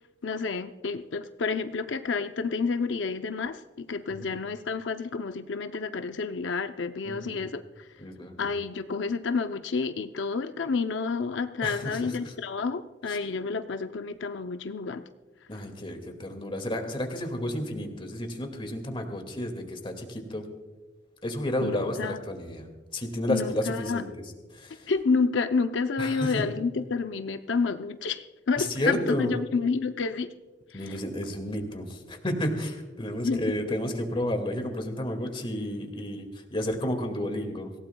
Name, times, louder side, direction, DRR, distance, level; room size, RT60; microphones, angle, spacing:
voice 1, 0.2-7.6 8.4-15.0 21.6-22.2 23.3-24.0 24.9-30.3 30.7-31.0 33.2-33.4, left 4 dB, 85° left, 9 dB, 0.6 m, -29 dB
voice 2, 7.0-7.5 8.0-8.5 11.6-12.3 13.1-13.2 15.5-20.5 21.2-22.6 22.9-24.2 24.5-24.9 26.0-26.5 28.6-29.3 30.7-37.7, left 1 dB, 30° left, 4 dB, 2.1 m, -32 dB
26.0 x 16.5 x 2.3 m, 1.3 s
head